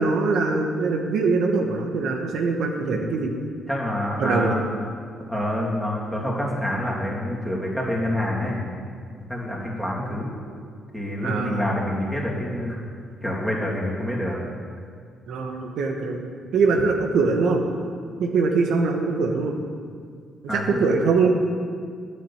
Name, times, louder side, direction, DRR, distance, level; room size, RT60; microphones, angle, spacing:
voice 1, 0.0-3.3 4.2-4.6 11.2-11.7 15.3-16.3 16.5-17.6 18.2-19.5 20.5-21.3, right 4 dB, 75° right, 2 dB, 1.2 m, -22 dB
voice 2, 3.7-4.6 5.3-8.6 9.3-10.3 10.9-12.8 13.2-14.4 20.5-20.8, left 1 dB, ahead, -4 dB, 2.9 m, -27 dB
9.9 x 6.8 x 8.6 m, 2.1 s
cardioid pair, 90°, 0 cm